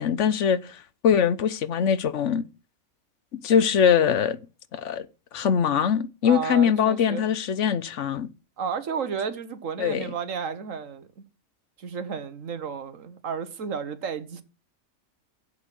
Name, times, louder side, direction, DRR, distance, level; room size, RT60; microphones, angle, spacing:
voice 1, 0.0-2.4 3.3-4.4 4.7-5.1 5.3-8.3 9.8-10.0, left 8 dB, 65° left, 1.1 m, -22 dB
voice 2, 6.2-7.2 8.6-11.2 11.8-14.4, right 6 dB, 70° right, 1.6 m, -32 dB
10.5 x 8.1 x 6.1 m
omnidirectional pair, 1.4 m